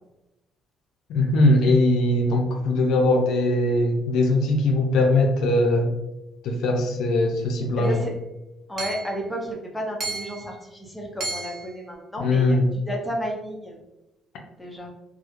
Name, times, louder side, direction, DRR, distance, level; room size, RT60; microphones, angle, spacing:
voice 1, 1.1-5.9 6.4-8.1 12.2-12.7, left 2 dB, 80° left, 2 dB, 0.4 m, -20 dB
voice 2, 7.8-8.1 8.7-13.7 14.6-14.9, equal, 10° left, -1 dB, 0.6 m, -32 dB
Hammer / Chink clink, 7.8-8.0 8.8-9.2 10.0-10.5 11.2-11.7, right 3 dB, 40° right, 0.5 m, -32 dB
2.2 x 2.0 x 2.9 m, 0.97 s
cardioid pair, 100°, 0 cm